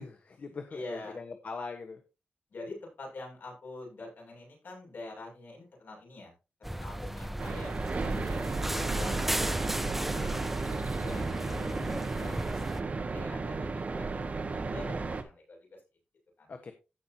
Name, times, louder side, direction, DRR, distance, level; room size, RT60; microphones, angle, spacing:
voice 1, 0.0-2.0 11.1-12.1 16.5-16.7, left 4 dB, 50° left, 6 dB, 1.2 m, -43 dB
voice 2, 0.7-1.2 2.5-6.3 6.7-8.4 8.7-15.6 16.4-16.5, left 2 dB, 65° left, -1 dB, 6.7 m, -45 dB
sound 1, 6.6-12.8, right 1 dB, 5° right, 0.6 m, -36 dB
sound 2, 7.4-15.2, right 3 dB, 40° right, 1.4 m, -34 dB
16.0 x 6.1 x 2.8 m, 0.30 s
wide cardioid pair, 135°, 4 cm